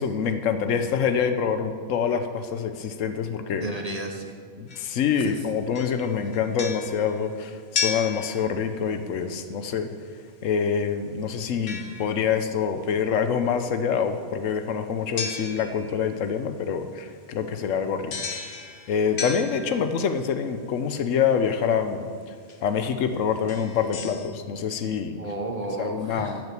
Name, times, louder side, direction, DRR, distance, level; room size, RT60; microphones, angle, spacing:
voice 1, 0.0-3.6 4.6-9.9 10.4-18.3 18.9-22.1 22.6-25.2 25.8-26.5, left 7 dB, 80° left, 8 dB, 1.1 m, -26 dB
voice 2, 3.5-4.4 5.1-5.4 25.2-26.4, right 2 dB, 35° right, 3 dB, 0.9 m, -32 dB
sound 1, 4.7-5.4 5.7-9.0 11.7-12.5 15.2-16.1 18.1-20.2 21.7-21.8 22.5-22.7 23.3-24.3, left 5 dB, 55° left, 1.2 m, -35 dB
12.0 x 6.4 x 7.5 m, 2.1 s
omnidirectional pair, 1.3 m